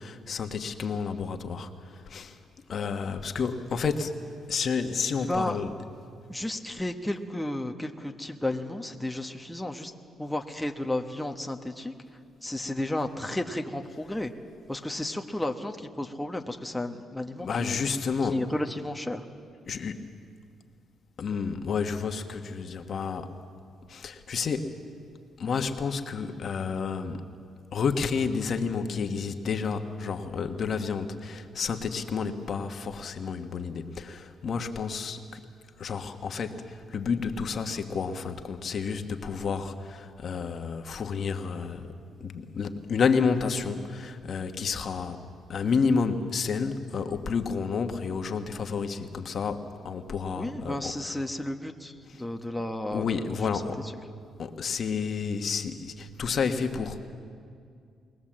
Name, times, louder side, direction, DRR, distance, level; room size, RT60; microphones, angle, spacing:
voice 1, 0.0-2.3 2.7-4.2 4.5-5.7 17.4-18.4 19.7-20.0 21.2-23.4 23.9-24.8 25.4-27.3 27.7-35.2 35.8-41.9 42.2-45.2 45.5-51.1 52.1-52.2 52.9-53.8 54.4-57.0, left 5 dB, 55° left, 6 dB, 1.3 m, -30 dB
voice 2, 5.3-5.6 6.3-9.9 10.2-11.9 12.4-14.3 14.7-17.7 18.2-19.2 50.4-51.9 52.2-53.4, left 1 dB, 5° left, 3 dB, 1.2 m, -32 dB
22.5 x 18.5 x 7.5 m, 2.3 s
cardioid pair, 90°, 0 cm